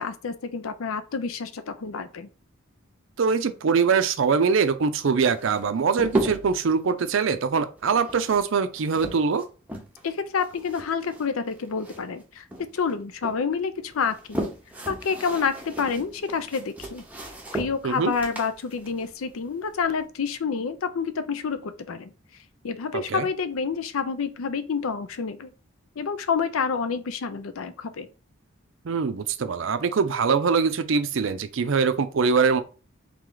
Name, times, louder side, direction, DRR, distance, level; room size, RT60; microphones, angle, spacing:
voice 1, 0.0-2.3 10.0-14.5 14.9-17.0 17.5-22.1 22.6-25.5 26.0-28.1, left 5 dB, 85° left, 0.5 m, -28 dB
voice 2, 3.2-9.5 17.8-18.1 22.9-23.3 28.8-32.6, right 5 dB, 70° right, 0.5 m, -23 dB
sound 1, 5.3-6.7 7.8-10.1 10.4-12.2 12.5-13.4 13.9-20.0, right 1 dB, 5° right, 0.6 m, -35 dB
3.4 x 3.2 x 3.8 m
head